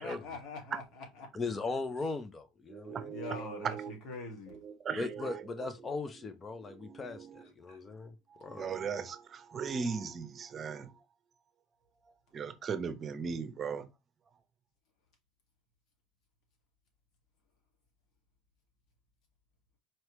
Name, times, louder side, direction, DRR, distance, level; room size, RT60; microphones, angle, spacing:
voice 1, 0.0-1.3 2.0-2.1 3.1-4.6 7.7-7.8, left 3 dB, 60° left, 1.9 m, -44 dB
voice 2, 1.3-3.1 5.0-8.1 8.4-8.8, left 3 dB, 25° left, 0.6 m, -38 dB
voice 3, 2.7-3.9 4.6-5.4 6.7-7.4 8.3-10.9 12.3-13.9, right 6 dB, 35° right, 0.8 m, -38 dB
4.5 x 3.1 x 3.1 m
supercardioid pair, 90°, 0 cm